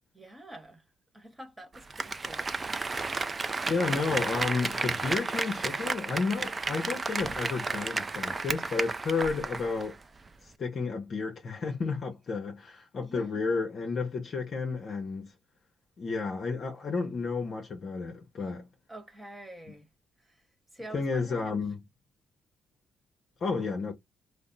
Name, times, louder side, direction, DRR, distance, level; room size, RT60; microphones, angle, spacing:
voice 1, 0.1-0.8 1.1-3.8 13.0-13.4 18.4-18.5 18.9-19.9 20.2-20.4 20.7-21.5, right 1 dB, 15° right, 1.2 m, -48 dB
Applause, 1.7-9.9 10.3-10.4, right 3 dB, 30° right, 0.4 m, -32 dB
voice 2, 3.7-10.0 10.4-15.3 16.0-18.7 20.9-21.8 23.4-23.9, left 4 dB, 50° left, 0.8 m, -32 dB
3.4 x 2.0 x 3.8 m
cardioid pair, 90°, 0 cm